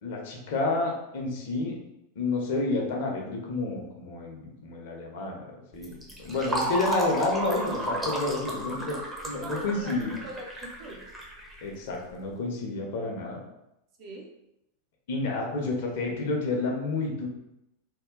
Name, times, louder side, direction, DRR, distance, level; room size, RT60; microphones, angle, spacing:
voice 1, 0.0-1.8 2.2-9.0 9.3-10.2 11.6-13.4 15.1-17.3, left 3 dB, 55° left, 1 dB, 0.7 m, -30 dB
Fill (with liquid), 5.8-12.2, right 1 dB, 10° right, 0.7 m, -33 dB
voice 2, 9.4-11.0 14.0-14.3, right 2 dB, 45° right, 0 dB, 0.7 m, -43 dB
2.7 x 2.2 x 3.7 m, 0.86 s
figure-of-eight pair, 90°, 0 cm